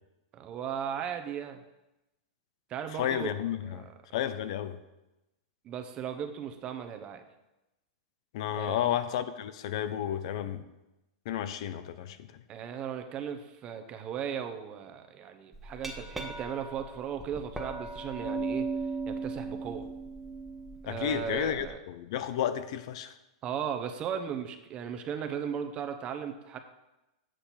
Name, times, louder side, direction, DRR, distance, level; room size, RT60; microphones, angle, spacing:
voice 1, 0.3-1.6 2.7-3.9 5.6-7.2 8.5-9.0 12.5-18.7 19.1-19.9 20.8-21.8 23.4-26.6, right 8 dB, 30° right, 7 dB, 0.9 m, -37 dB
voice 2, 3.0-3.9 4.1-4.8 8.3-10.6 11.3-12.2 20.9-23.1, left 10 dB, 60° left, 11 dB, 0.6 m, -32 dB
Glass, 15.5-21.7, right 3 dB, 5° right, 1.0 m, -37 dB
7.7 x 6.6 x 4.4 m, 0.96 s
hypercardioid pair, 130°, 3 cm